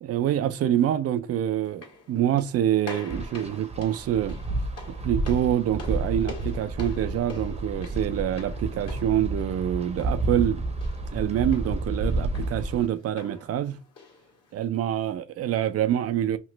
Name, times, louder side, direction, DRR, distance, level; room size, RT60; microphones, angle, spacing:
voice 1, 0.0-4.4 4.9-10.6 11.1-13.8 14.5-16.4, right 11 dB, 55° right, 0.5 m, -26 dB
sound 1, 1.6-14.7, left 4 dB, 55° left, 1.6 m, -47 dB
Wind, 3.1-12.9, right 2 dB, 20° right, 0.8 m, -31 dB
3.0 x 2.4 x 3.1 m
cardioid pair, 90°, 30 cm